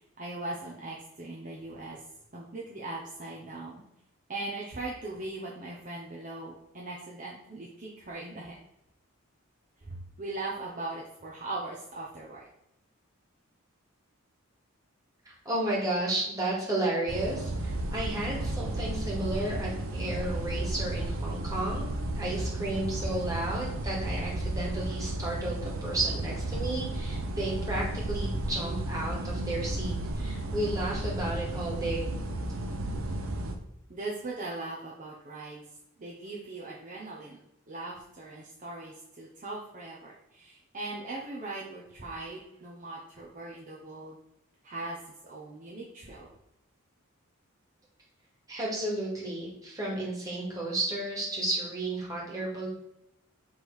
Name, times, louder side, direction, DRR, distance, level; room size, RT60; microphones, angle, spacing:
voice 1, 0.2-2.0 2.3-3.8 4.3-8.5 9.8-12.5 33.9-35.6 36.0-37.4 37.7-44.2 44.6-46.3, right 2 dB, 40° right, -4 dB, 0.9 m, -39 dB
voice 2, 15.3-21.9 22.2-32.1 48.5-52.7, right 1 dB, 15° right, -5 dB, 2.1 m, -33 dB
sound 1, 17.1-33.6, right 1 dB, 80° right, 0.8 m, -33 dB
6.3 x 3.7 x 4.9 m, 0.82 s
head